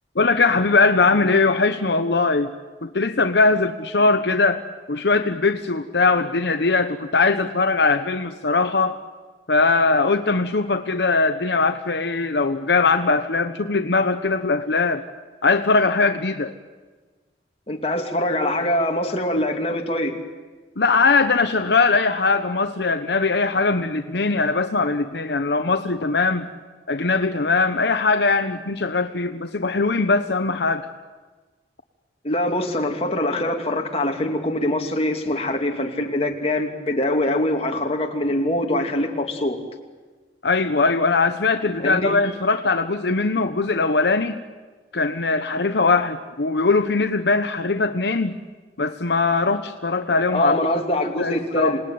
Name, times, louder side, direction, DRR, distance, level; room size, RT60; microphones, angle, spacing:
voice 1, 0.1-2.5 2.8-9.0 9.5-15.0 15.4-16.5 20.8-26.5 26.9-30.9 40.4-44.4 44.9-48.4 48.8-50.6 51.2-51.8, left 3 dB, 70° left, 8 dB, 1.0 m, -20 dB
voice 2, 17.7-20.2 32.2-39.6 41.8-42.1 50.3-51.8, left 1 dB, 35° left, 3 dB, 2.6 m, -23 dB
27.5 x 19.0 x 9.5 m, 1.4 s
head